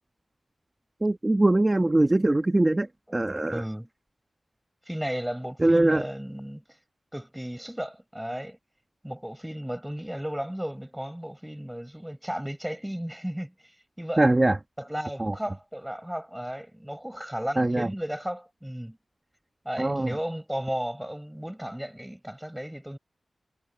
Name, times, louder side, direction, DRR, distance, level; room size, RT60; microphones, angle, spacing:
voice 1, 1.0-2.9 3.1-3.6 5.6-6.0 14.2-14.6 15.2-15.3 17.6-17.9 19.8-20.1, right 2 dB, 20° right, 1.7 m, -22 dB
voice 2, 3.5-3.9 4.9-6.6 7.1-8.6 9.0-13.5 14.0-14.3 14.8-19.0 19.6-23.0, equal, 5° right, 7.6 m, -34 dB
wide cardioid pair, 120°, 0 cm